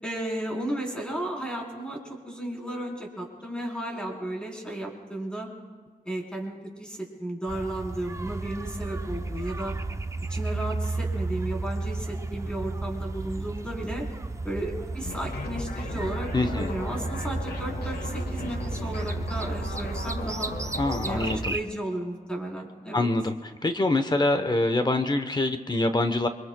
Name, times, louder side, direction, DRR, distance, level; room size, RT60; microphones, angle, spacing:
voice 1, 0.0-5.5 6.0-9.7 10.3-14.1 14.4-20.5 21.0-23.1, right 1 dB, 5° left, -2 dB, 3.7 m, -34 dB
sound 1, 7.5-21.6, right 3 dB, 20° right, 0.5 m, -33 dB
sound 2, 15.0-21.4, left 4 dB, 80° left, 1.2 m, -37 dB
voice 2, 16.3-16.7 20.8-21.5 22.9-23.4 23.6-26.3, left 2 dB, 25° left, 8 dB, 0.9 m, -25 dB
27.0 x 23.5 x 2.2 m, 1.5 s
wide cardioid pair, 100°, 16 cm